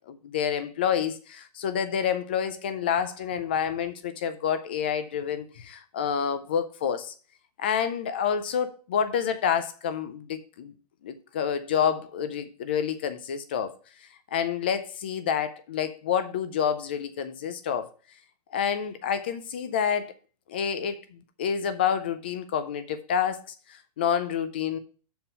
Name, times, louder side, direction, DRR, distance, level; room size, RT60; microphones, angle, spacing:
voice 1, 0.1-7.1 7.6-10.7 11.0-13.8 14.3-17.9 18.5-20.1 20.5-23.4 23.7-24.8, left 8 dB, 15° left, 0.3 m, -28 dB
7.2 x 4.3 x 6.5 m
hypercardioid pair, 180°, 20 cm